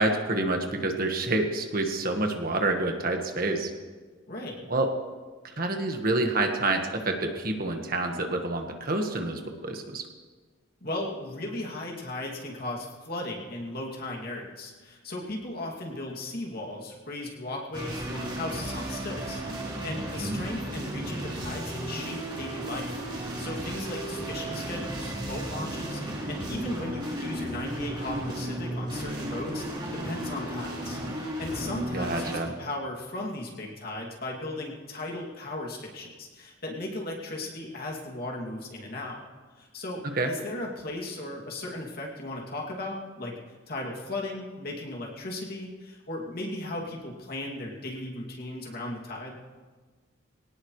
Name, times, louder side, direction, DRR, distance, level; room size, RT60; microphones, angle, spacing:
voice 1, 0.0-3.7 4.7-4.9 5.6-10.0 20.2-20.4 31.9-32.5 40.2-40.3, right 2 dB, 45° right, 4 dB, 1.5 m, -28 dB
voice 2, 4.3-4.7 10.8-39.2 39.6-43.4 43.7-49.4, left 1 dB, 50° left, -1 dB, 2.6 m, -36 dB
sound 1, 17.7-32.4, right 1 dB, 25° right, 3.4 m, -34 dB
23.0 x 18.0 x 3.3 m, 1.4 s
head